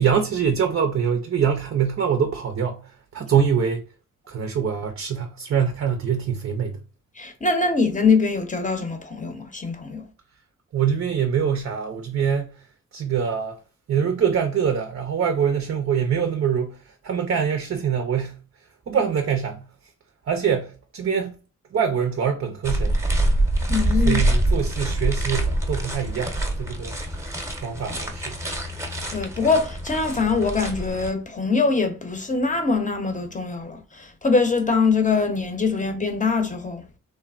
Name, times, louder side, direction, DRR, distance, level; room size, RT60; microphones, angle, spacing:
voice 1, 0.0-3.8 4.3-6.8 10.7-12.6 12.9-13.6 13.9-18.4 18.9-19.7 20.3-21.3 21.7-23.0 24.1-27.3 27.6-28.4, right 7 dB, 45° right, 0.5 m, -24 dB
voice 2, 7.2-10.0 23.7-24.2 29.1-36.8, left 4 dB, 25° left, 0.7 m, -23 dB
sound 1, 22.6-31.1, right 1 dB, 10° right, 0.8 m, -25 dB
3.2 x 2.0 x 2.4 m
cardioid pair, 50°, 31 cm